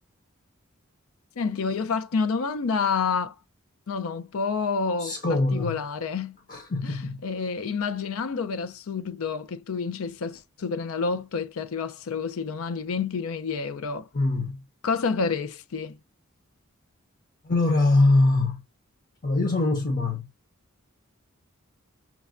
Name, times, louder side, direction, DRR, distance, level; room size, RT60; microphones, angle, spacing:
voice 1, 1.4-3.3 3.9-5.1 5.5-6.4 7.2-14.1 14.8-16.0, left 5 dB, 80° left, 0.5 m, -28 dB
voice 2, 5.0-5.8 6.5-7.2 14.1-14.6 17.4-18.6 19.2-20.3, left 2 dB, 40° left, 0.7 m, -23 dB
5.9 x 2.1 x 2.4 m
head